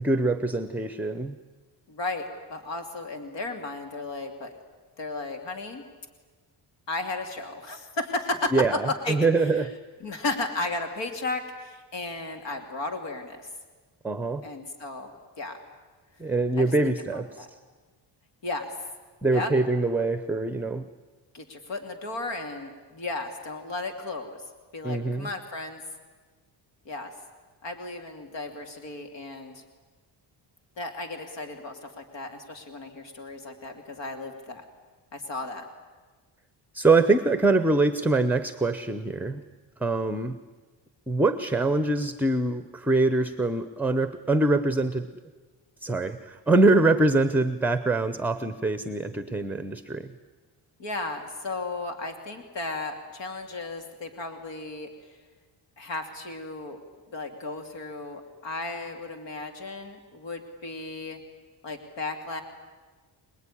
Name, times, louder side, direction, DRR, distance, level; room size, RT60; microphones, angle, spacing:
voice 1, 0.0-1.3 8.5-9.7 14.0-14.4 16.2-17.5 19.2-20.9 24.8-25.3 36.7-39.4 39.8-40.4 41.1-45.1 45.8-50.1, right 2 dB, 5° right, 11 dB, 0.7 m, -24 dB
voice 2, 1.9-4.5 5.0-5.8 6.9-9.2 9.5-9.7 10.0-13.5 14.4-15.1 15.4-15.6 16.2-17.5 18.4-18.7 19.3-19.5 21.3-25.8 26.8-27.1 27.6-29.6 30.8-34.6 35.1-35.7 50.8-55.2 55.8-56.8 57.1-61.2 61.6-62.4, left 2 dB, 70° left, 5 dB, 2.9 m, -34 dB
27.0 x 20.0 x 10.0 m, 1.3 s
cardioid pair, 150°, 45 cm